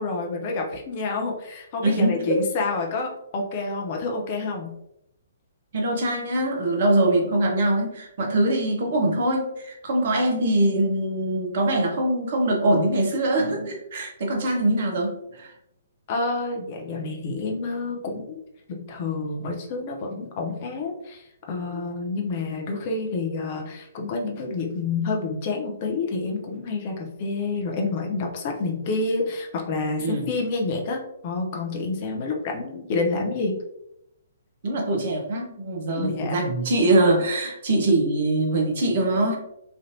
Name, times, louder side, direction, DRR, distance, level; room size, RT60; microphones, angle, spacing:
voice 1, 0.0-4.8 16.1-18.4 18.7-33.6 36.0-36.5, left 3 dB, 35° left, 1 dB, 0.6 m, -28 dB
voice 2, 1.8-2.4 5.7-15.5 30.0-30.2 34.6-39.4, right 1 dB, 50° right, 1 dB, 0.8 m, -23 dB
3.2 x 2.5 x 2.6 m, 0.81 s
figure-of-eight pair, 125°, 0 cm